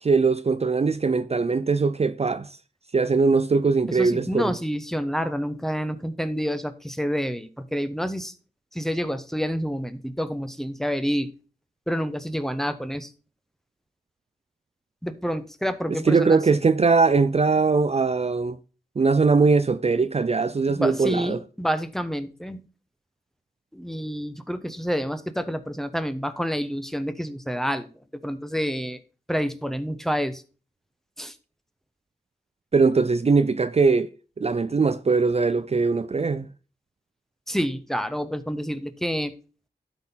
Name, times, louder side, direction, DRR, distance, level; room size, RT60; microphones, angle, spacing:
voice 1, 0.0-2.6 2.9-4.5 16.0-18.6 19.0-21.4 32.7-34.1 34.4-36.5, right 4 dB, 35° right, 0.5 m, -21 dB
voice 2, 3.9-8.3 8.7-11.3 11.9-13.1 15.0-16.4 20.7-22.6 23.7-27.9 28.2-29.0 29.3-30.4 31.2-31.3 37.5-39.3, equal, ahead, 1.1 m, -28 dB
11.5 x 4.3 x 5.6 m
cardioid pair, 50°, 18 cm